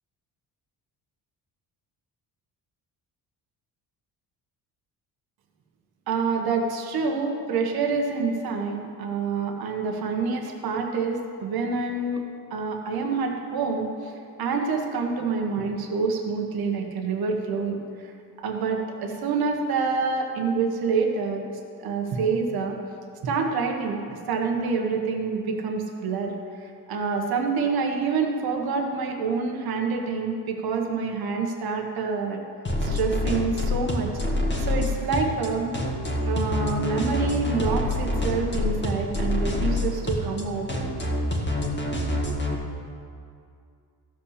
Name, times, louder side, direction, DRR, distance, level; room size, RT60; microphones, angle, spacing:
voice 1, 6.1-12.2 12.5-18.1 18.4-21.4 21.8-22.8 23.2-26.3 26.6-32.4 32.8-34.1 34.6-35.7 36.2-40.7, right 4 dB, 65° right, 2 dB, 1.5 m, -27 dB
sound 1, 32.6-42.5, left 1 dB, 25° left, 1.8 m, -26 dB
14.5 x 5.8 x 6.7 m, 2.4 s
cardioid pair, 100°, 40 cm